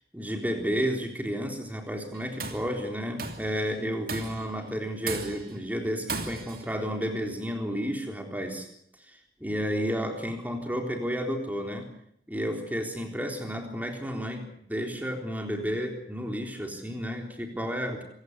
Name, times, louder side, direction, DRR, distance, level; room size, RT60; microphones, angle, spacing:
voice 1, 0.1-8.7 9.1-11.9 12.3-18.0, equal, 10° right, 3 dB, 3.8 m, -32 dB
Tools, 2.1-2.7 3.2-3.6 4.1-4.5 5.1-5.6 6.1-6.7, right 4 dB, 55° right, 2.7 m, -35 dB
26.5 x 17.5 x 8.2 m, 0.71 s
head